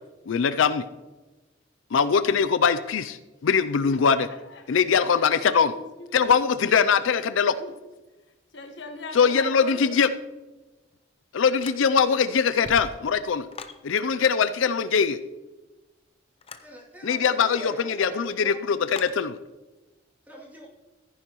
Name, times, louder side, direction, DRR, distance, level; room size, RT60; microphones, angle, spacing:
voice 1, 0.3-0.8 1.9-4.3 4.7-5.7 6.1-7.5 9.1-10.1 11.3-13.5 13.8-15.2 17.0-19.4, left 6 dB, 80° left, 13 dB, 0.4 m, -22 dB
voice 2, 3.9-4.7 5.5-6.3 6.8-6.9 7.6-7.7 8.5-10.1, left 2 dB, 60° left, 4 dB, 1.3 m, -41 dB
sound 1, 11.6-12.2 12.5-13.8 16.4-16.7 18.9-19.2, left 4 dB, 30° left, 0.6 m, -41 dB
voice 3, 16.6-18.6 20.2-20.7, right 1 dB, 10° right, -4 dB, 2.7 m, -43 dB
14.5 x 9.9 x 3.0 m, 1.1 s
head